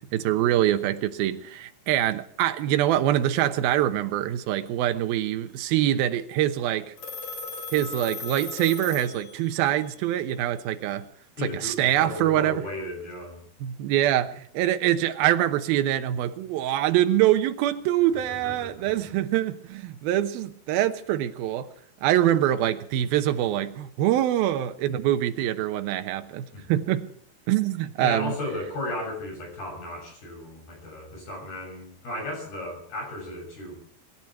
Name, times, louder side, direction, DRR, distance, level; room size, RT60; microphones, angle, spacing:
voice 1, 0.0-6.9 7.7-11.1 11.4-12.6 13.6-21.7 22.0-27.1 27.5-28.3, right 12 dB, 75° right, 2.7 m, -24 dB
Telephone, 7.0-9.7, left 3 dB, 35° left, 3.9 m, -37 dB
voice 2, 11.4-13.4 18.1-19.1 26.5-26.6 28.0-33.8, left 1 dB, 70° left, 8.9 m, -35 dB
25.0 x 12.5 x 4.6 m
omnidirectional pair, 4.6 m